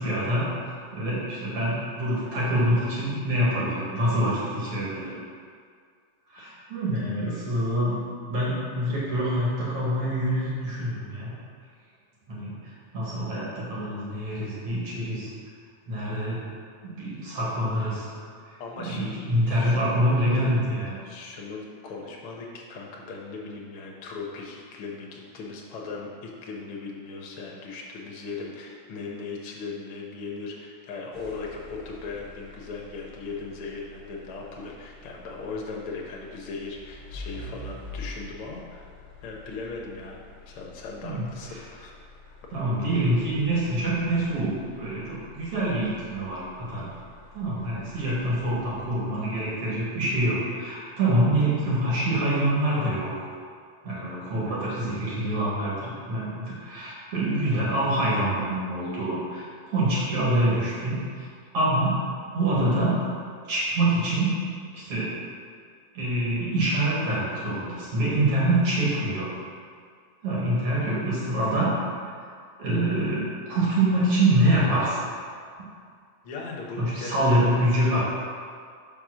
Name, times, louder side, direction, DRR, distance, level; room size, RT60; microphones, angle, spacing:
voice 1, 0.0-5.2 6.3-11.3 12.3-15.3 15.9-16.4 16.8-18.1 18.5-21.0 41.0-41.2 42.5-46.9 47.3-53.1 53.8-61.3 61.5-62.1 62.3-63.0 63.5-64.4 64.7-65.1 65.9-69.3 70.2-71.8 72.6-75.0 76.8-78.0, right 1 dB, 55° right, -7 dB, 2.5 m, -25 dB
voice 2, 18.6-19.8 21.0-41.9 46.9-47.0 76.2-77.3, left 4 dB, 65° left, -1 dB, 1.4 m, -38 dB
sound 1, 31.1-49.4, left 2 dB, 20° left, 1.5 m, -47 dB
5.5 x 5.3 x 6.1 m, 2.2 s
omnidirectional pair, 3.4 m